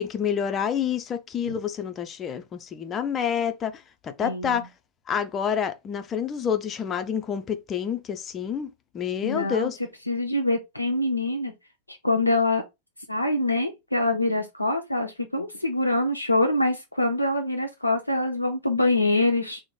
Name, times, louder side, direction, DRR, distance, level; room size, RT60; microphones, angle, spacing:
voice 1, 0.0-4.7 5.1-8.7 8.9-9.8, left 8 dB, 25° left, 0.4 m, -28 dB
voice 2, 4.2-4.6 9.2-9.7 10.1-11.5 11.9-12.6 13.1-19.6, left 2 dB, 85° left, 0.4 m, -25 dB
3.0 x 2.0 x 3.7 m
figure-of-eight pair, 90°, 0 cm